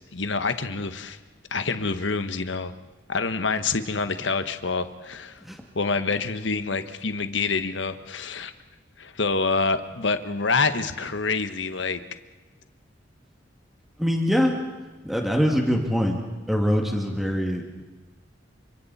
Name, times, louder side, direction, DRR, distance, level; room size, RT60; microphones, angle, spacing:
voice 1, 0.1-1.2 1.5-2.7 3.1-5.4 5.7-8.5 9.0-12.0, left 4 dB, 75° left, 10 dB, 1.3 m, -26 dB
voice 2, 14.0-14.5 15.0-16.2 16.5-17.8, equal, ahead, 1 dB, 2.3 m, -23 dB
29.5 x 25.5 x 4.3 m, 1.2 s
head